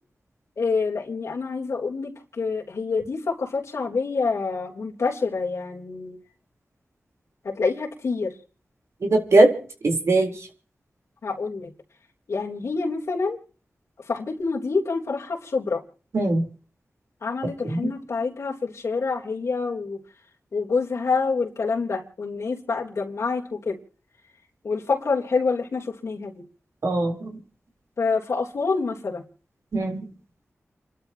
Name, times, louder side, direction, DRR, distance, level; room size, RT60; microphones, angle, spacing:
voice 1, 0.6-6.2 7.4-8.4 11.2-11.7 12.3-13.4 14.1-15.8 17.2-20.0 20.5-23.8 24.6-26.4 28.0-29.2, left 4 dB, 80° left, -1 dB, 3.5 m, -27 dB
voice 2, 9.0-9.5 9.8-10.3 16.1-16.4 17.6-17.8 26.8-27.3 29.7-30.0, right 2 dB, 75° right, 2 dB, 3.8 m, -20 dB
29.5 x 12.5 x 2.9 m, 0.41 s
wide cardioid pair, 60°, 5 cm